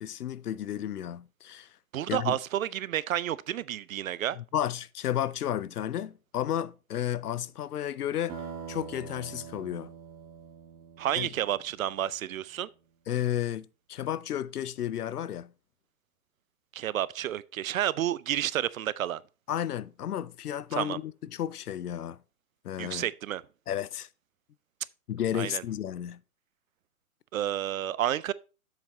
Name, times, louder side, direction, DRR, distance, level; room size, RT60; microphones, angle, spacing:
voice 1, 0.0-1.7 2.1-2.4 4.4-8.4 8.7-9.9 11.2-11.3 13.1-15.5 19.5-22.2 22.6-23.0 23.7-24.1 25.1-26.2, left 11 dB, 85° left, 0.6 m, -32 dB
voice 2, 1.9-4.4 11.0-12.7 16.7-19.2 20.7-21.0 22.8-23.4 25.3-25.6 27.3-28.3, right 11 dB, 65° right, 0.6 m, -30 dB
sound 1, 8.3-12.1, right 7 dB, 20° right, 1.6 m, -44 dB
7.5 x 5.9 x 4.1 m
hypercardioid pair, 140°, 45 cm